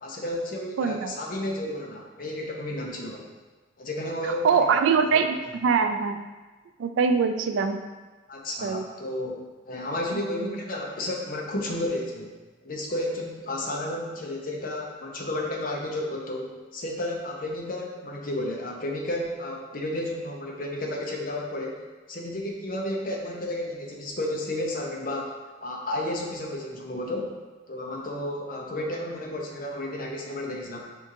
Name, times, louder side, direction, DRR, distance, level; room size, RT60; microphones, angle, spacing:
voice 1, 0.0-3.3 3.8-4.7 8.3-9.4 9.7-12.4 12.6-21.8 22.1-25.4 25.6-27.3 27.7-30.9, left 1 dB, 45° left, 0 dB, 0.7 m, -32 dB
voice 2, 0.8-1.1 4.4-6.2 6.8-7.8 8.6-8.9 10.4-10.5, right 5 dB, 90° right, 7 dB, 0.3 m, -23 dB
4.4 x 2.7 x 3.7 m, 1.3 s
head